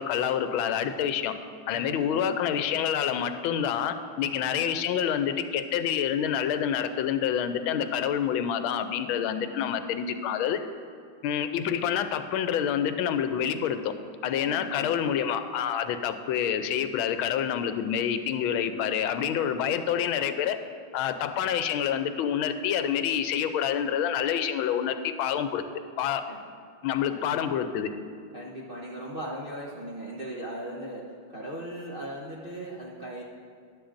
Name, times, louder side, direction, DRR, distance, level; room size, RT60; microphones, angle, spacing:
voice 1, 0.0-1.3 1.7-10.6 11.2-13.9 14.2-20.6 20.9-25.6 26.0-26.2 26.8-27.9, left 9 dB, 90° left, 9 dB, 1.4 m, -27 dB
voice 2, 1.7-2.2 14.2-15.3 26.3-26.4 28.3-33.2, right 1 dB, 45° right, -5 dB, 0.7 m, -38 dB
14.0 x 10.5 x 2.6 m, 2.1 s
omnidirectional pair, 2.2 m